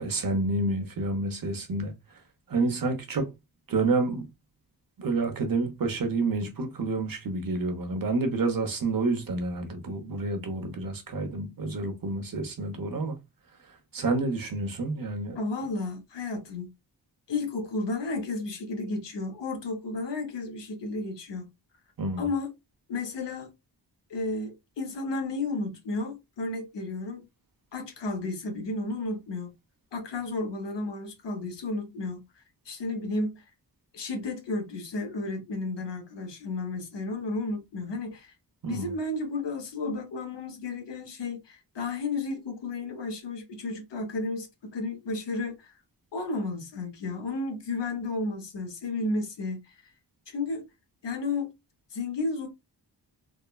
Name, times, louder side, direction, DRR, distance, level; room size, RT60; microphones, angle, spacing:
voice 1, 0.0-2.2 2.5-3.3 3.7-4.3 5.0-13.2 13.6-15.4 22.0-22.2 38.6-38.9, right 3 dB, 55° right, 0.8 m, -29 dB
voice 2, 15.4-16.7 17.3-21.5 22.2-22.5 22.9-23.5 24.1-27.2 27.7-29.5 29.9-32.2 32.7-33.4 33.9-38.3 38.7-45.7 46.1-49.8 50.3-50.6 51.0-51.5 51.9-52.5, left 3 dB, 90° left, 0.9 m, -32 dB
3.5 x 2.1 x 2.2 m
wide cardioid pair, 150°, 41 cm